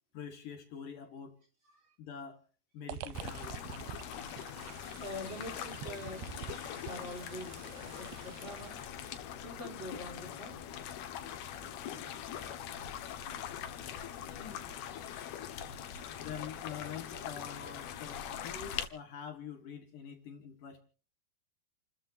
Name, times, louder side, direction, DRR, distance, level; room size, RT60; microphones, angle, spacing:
voice 1, 0.1-1.4 2.0-2.4 2.7-3.6 14.2-14.7 16.2-20.8, left 7 dB, 60° left, 3.0 m, -45 dB
sound 1, 2.9-8.9, right 12 dB, 80° right, 2.8 m, -47 dB
sound 2, 3.1-18.9, left 9 dB, 85° left, 3.4 m, -42 dB
voice 2, 4.7-6.2 6.9-8.8 9.4-10.6, left 1 dB, 30° right, 4.6 m, -45 dB
30.0 x 14.0 x 2.8 m
omnidirectional pair, 4.4 m